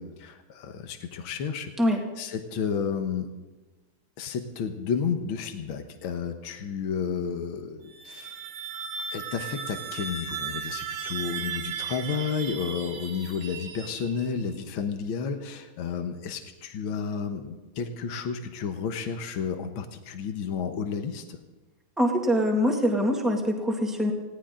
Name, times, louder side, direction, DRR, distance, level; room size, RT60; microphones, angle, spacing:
voice 1, 0.0-1.7 2.2-3.3 4.2-8.3 9.1-21.4, left 6 dB, 70° left, 6 dB, 2.0 m, -32 dB
sound 1, 7.8-14.4, right 7 dB, 90° right, 2.1 m, -36 dB
voice 2, 22.0-24.1, equal, ahead, 1 dB, 2.0 m, -24 dB
20.5 x 17.0 x 3.8 m, 1.2 s
omnidirectional pair, 2.3 m